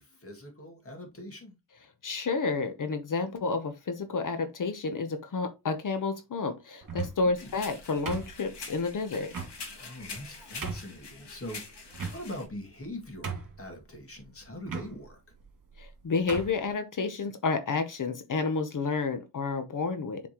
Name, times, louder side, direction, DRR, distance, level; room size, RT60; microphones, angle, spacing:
voice 1, 0.0-1.5 7.2-7.6 9.8-11.6 12.1-15.2, left 1 dB, 35° left, 2.3 m, -42 dB
voice 2, 2.0-9.3 15.8-20.2, left 4 dB, 50° left, 0.9 m, -30 dB
sound 1, 6.8-7.3 8.1-8.7 9.3-9.5 10.1-10.2 10.6-11.0 11.9-12.5 12.9-13.0 13.2-13.7 14.6-14.9 15.7-15.9 16.3-16.6, right 5 dB, 55° right, 2.2 m, -36 dB
sound 2, 7.4-12.4, left 4 dB, 90° left, 2.5 m, -45 dB
7.4 x 4.3 x 3.0 m
wide cardioid pair, 115°, 40 cm